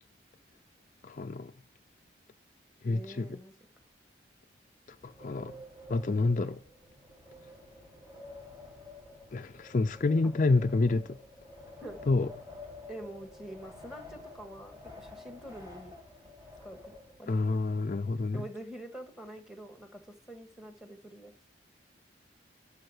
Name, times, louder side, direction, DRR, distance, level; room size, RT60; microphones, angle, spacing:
voice 1, 1.0-1.5 2.8-3.4 5.0-5.5 5.9-6.6 9.3-11.2 12.1-12.3 17.3-18.4, left 3 dB, 45° left, 0.4 m, -28 dB
voice 2, 2.9-3.5 10.5-10.6 11.8-12.0 12.9-15.9 16.6-16.9 17.2-17.4 18.3-21.3, right 1 dB, 5° right, 1.7 m, -46 dB
Wind, 4.9-17.5, left 2 dB, 20° right, 3.7 m, -50 dB
12.5 x 7.2 x 4.9 m
head